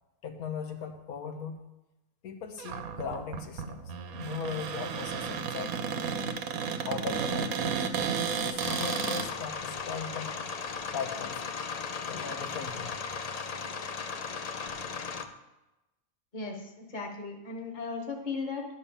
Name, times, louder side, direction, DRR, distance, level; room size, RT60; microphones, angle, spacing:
voice 1, 0.2-1.6 2.2-5.8 6.9-7.9 8.4-10.4 10.9-11.5 12.0-13.4, left 6 dB, 85° left, 5 dB, 1.4 m, -39 dB
Cupboard open or close, 2.6-9.3, right 6 dB, 80° right, 1.2 m, -33 dB
sound 1, 8.6-15.2, left 5 dB, 65° left, 0.4 m, -37 dB
voice 2, 16.3-18.7, left 4 dB, 35° left, 3 dB, 1.3 m, -36 dB
11.0 x 4.6 x 7.2 m, 1.0 s
omnidirectional pair, 1.5 m